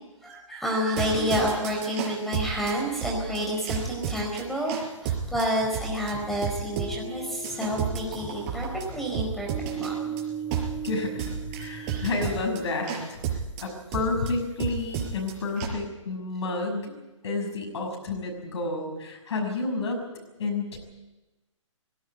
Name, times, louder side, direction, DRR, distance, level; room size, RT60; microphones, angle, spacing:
voice 1, 0.2-9.5 9.7-10.1, equal, ahead, 0 dB, 4.5 m, -29 dB
sound 1, 0.9-15.7, right 7 dB, 35° right, 4.9 m, -32 dB
voice 2, 10.8-16.9 17.2-20.0 20.4-20.8, left 3 dB, 60° left, 3 dB, 6.1 m, -30 dB
18.0 x 17.0 x 9.4 m, 1.1 s
figure-of-eight pair, 130°, 16 cm